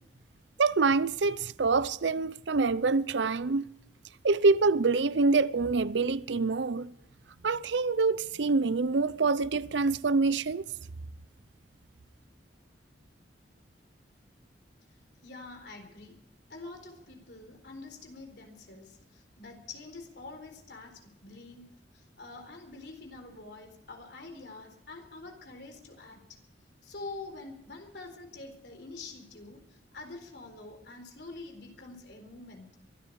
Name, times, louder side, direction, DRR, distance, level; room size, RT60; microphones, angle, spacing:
voice 1, 0.6-3.6 4.2-6.9 7.4-10.6, right 4 dB, 85° right, 0.6 m, -26 dB
voice 2, 15.2-16.2 16.5-21.6 21.9-26.4 26.8-32.7, left 3 dB, 70° left, 4.1 m, -46 dB
23.5 x 13.0 x 4.8 m
head